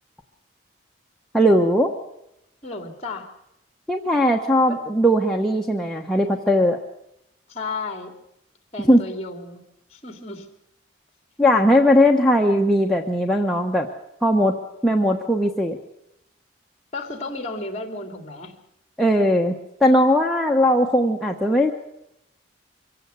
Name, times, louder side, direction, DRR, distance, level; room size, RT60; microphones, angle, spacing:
voice 1, 1.3-1.9 3.9-6.8 8.9-9.0 11.4-13.9 14.2-14.6 14.8-15.8 19.0-19.5 19.8-21.7, equal, ahead, -1 dB, 1.1 m, -18 dB
voice 2, 2.6-3.3 4.7-4.8 7.5-8.2 8.7-9.6 9.9-10.5 16.9-18.6, left 3 dB, 30° left, 6 dB, 2.7 m, -33 dB
24.0 x 16.0 x 8.1 m, 0.84 s
head